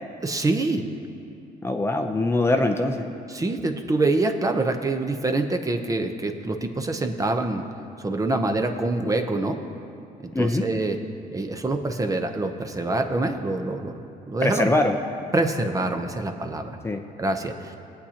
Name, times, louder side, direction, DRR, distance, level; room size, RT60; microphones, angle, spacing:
voice 1, 0.2-0.9 3.3-7.6 8.0-9.6 10.2-11.0 11.3-14.7 15.3-16.8 17.2-17.8, right 2 dB, 20° right, 5 dB, 0.8 m, -25 dB
voice 2, 1.6-3.0 10.3-10.6 14.4-15.0 16.8-17.0, left 2 dB, 15° left, 4 dB, 0.6 m, -22 dB
20.5 x 8.4 x 2.9 m, 2.6 s
cardioid pair, 110°, 17 cm